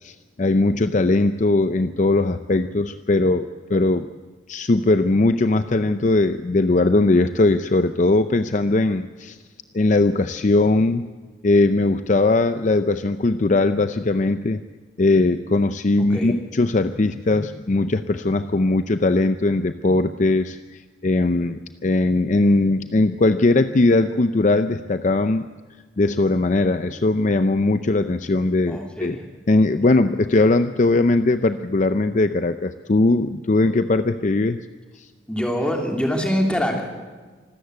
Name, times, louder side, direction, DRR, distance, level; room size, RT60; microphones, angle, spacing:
voice 1, 0.0-4.1 4.5-9.4 9.7-11.0 11.4-14.6 15.0-20.6 21.0-25.5 26.0-29.2 29.5-34.6 35.0-35.1, left 2 dB, 45° left, 10 dB, 0.5 m, -19 dB
voice 2, 28.7-29.2 35.3-36.8, equal, 5° left, 1 dB, 3.1 m, -24 dB
25.5 x 13.5 x 8.0 m, 1.4 s
head